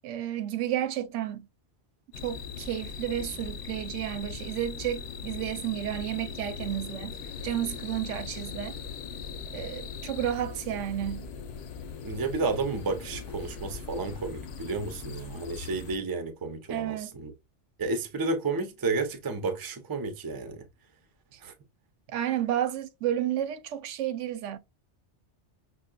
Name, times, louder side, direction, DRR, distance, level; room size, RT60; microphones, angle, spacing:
voice 1, 0.0-1.5 2.2-7.2 7.4-8.8 9.5-11.3 16.7-17.1 21.3-21.4 22.1-24.6, right 11 dB, 90° right, 0.9 m, -31 dB
sound 1, 2.1-16.0, left 6 dB, 70° left, 0.8 m, -40 dB
voice 2, 12.0-17.3 17.8-20.7 21.4-21.5, right 3 dB, 30° right, 0.4 m, -31 dB
6.1 x 2.2 x 2.2 m
omnidirectional pair, 1.2 m